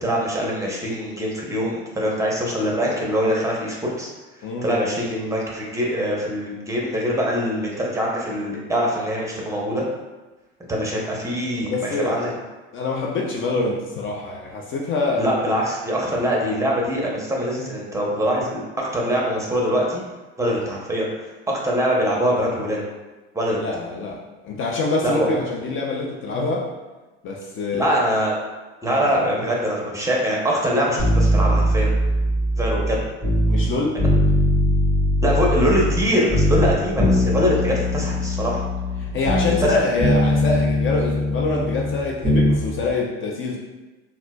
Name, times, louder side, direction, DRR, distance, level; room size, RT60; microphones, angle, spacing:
voice 1, 0.0-4.1 4.6-9.8 10.7-12.3 15.2-20.0 20.4-21.1 21.5-22.8 23.3-23.6 25.0-25.3 27.8-28.4 28.8-31.9 32.6-33.0 35.2-38.6 39.6-39.8, equal, 10° right, -3 dB, 0.8 m, -23 dB
voice 2, 4.4-4.7 11.6-12.2 12.7-15.3 16.1-16.2 23.6-26.7 27.2-28.0 29.0-29.1 33.5-34.0 39.0-43.6, left 3 dB, 40° left, 0 dB, 0.5 m, -25 dB
sound 1, 31.0-33.7 34.0-36.0 36.3-39.7 40.0-42.6 42.9-43.0, left 1 dB, 15° left, 1.5 m, -20 dB
4.2 x 2.1 x 2.3 m, 1.2 s
hypercardioid pair, 85°, 31 cm